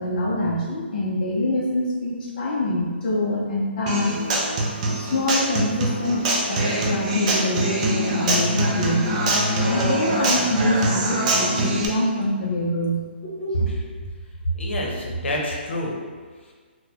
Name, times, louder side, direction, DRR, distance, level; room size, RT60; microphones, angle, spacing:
voice 1, 0.0-4.2 5.0-9.2 9.6-13.7, left 1 dB, 45° left, -5 dB, 0.5 m, -25 dB
Human voice / Acoustic guitar, 3.9-11.8, right 1 dB, 35° right, 0.5 m, -23 dB
voice 2, 13.5-14.1 14.5-16.0 16.4-16.5, equal, 80° left, -1 dB, 0.8 m, -27 dB
3.9 x 2.1 x 2.9 m, 1.6 s
hypercardioid pair, 160°, 6 cm